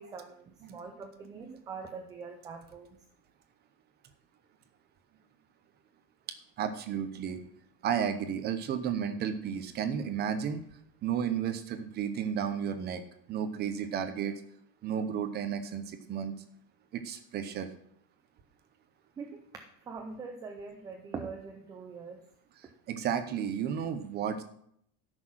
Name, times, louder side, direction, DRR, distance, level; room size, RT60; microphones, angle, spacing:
voice 1, 0.0-2.9 19.2-19.4 19.9-22.2, right 5 dB, 10° right, 4 dB, 0.3 m, -43 dB
voice 2, 6.6-7.4 7.8-10.7 11.0-13.0 13.3-14.4 14.8-16.3 16.9-17.7 22.6-24.4, right 8 dB, 25° right, 10 dB, 0.8 m, -33 dB
13.5 x 6.3 x 6.2 m, 0.69 s
cardioid pair, 175°, 39 cm